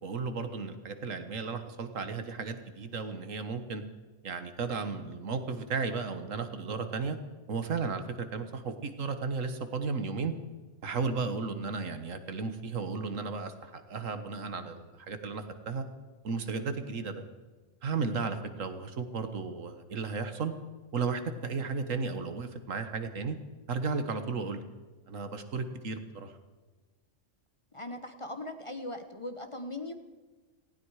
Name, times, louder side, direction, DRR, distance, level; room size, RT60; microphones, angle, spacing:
voice 1, 0.0-3.8 4.2-7.2 7.5-10.3 10.8-15.8 16.2-17.2 17.8-20.5 20.9-23.4 23.7-24.6 25.1-26.3, right 4 dB, 80° right, 9 dB, 1.7 m, -34 dB
voice 2, 27.7-29.9, left 1 dB, 25° left, 7 dB, 1.0 m, -39 dB
18.0 x 16.0 x 4.9 m, 1.3 s
omnidirectional pair, 1.3 m